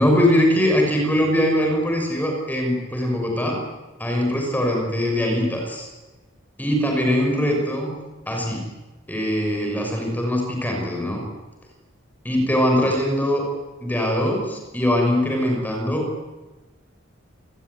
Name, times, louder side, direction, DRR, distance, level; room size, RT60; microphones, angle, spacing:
voice 1, 0.0-3.6 4.0-5.9 6.6-7.9 8.3-8.6 9.1-11.2 12.2-13.4 13.8-16.1, left 1 dB, 10° left, 1 dB, 6.2 m, -21 dB
27.5 x 20.5 x 9.6 m, 1.2 s
head